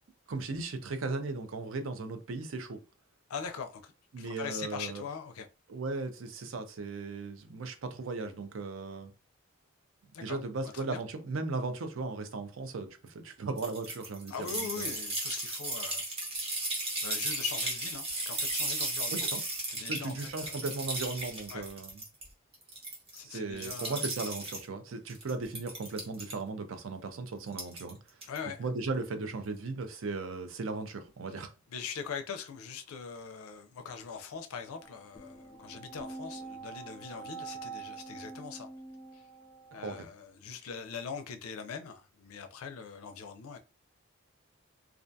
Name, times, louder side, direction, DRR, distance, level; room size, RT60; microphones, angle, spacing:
voice 1, 0.3-2.8 4.1-5.0 5.7-9.1 10.2-14.9 19.1-19.4 19.8-22.0 23.2-28.0 28.6-31.5 39.8-40.1, right 3 dB, 65° right, 0.5 m, -37 dB
voice 2, 3.3-5.5 10.1-10.4 10.7-11.0 14.3-16.1 17.0-19.3 19.7-20.6 21.5-21.7 23.1-24.0 28.3-28.6 31.7-38.7 39.1-39.2 39.7-43.6, left 6 dB, 85° left, 0.4 m, -41 dB
sound 1, 13.6-22.2 22.5-23.2 23.6-24.6 25.1-26.3 27.5-27.9 28.2-28.4, right 2 dB, 30° right, 0.8 m, -35 dB
sound 2, 34.7-40.0, right 4 dB, 25° left, 0.4 m, -45 dB
2.4 x 2.2 x 2.5 m
head